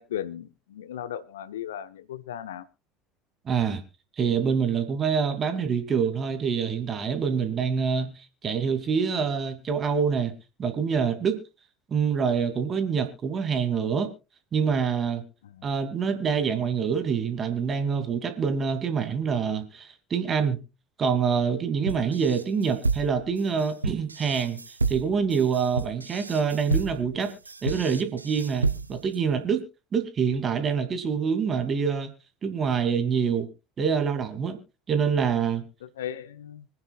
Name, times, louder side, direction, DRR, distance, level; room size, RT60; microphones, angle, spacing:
voice 1, 0.0-2.7 15.4-15.7 35.8-36.7, left 10 dB, 70° left, 16 dB, 0.7 m, -36 dB
voice 2, 3.5-3.8 4.2-10.3 10.6-11.4 11.9-14.1 14.5-15.2 15.6-20.6 21.0-24.6 24.9-27.3 27.6-29.6 29.9-32.1 32.4-33.5 33.8-34.6 34.9-35.6, right 6 dB, 30° right, 8 dB, 2.6 m, -26 dB
sound 1, 21.9-29.2, right 3 dB, 85° right, 0.6 m, -30 dB
25.5 x 9.8 x 2.4 m, 0.28 s
figure-of-eight pair, 70°, 0 cm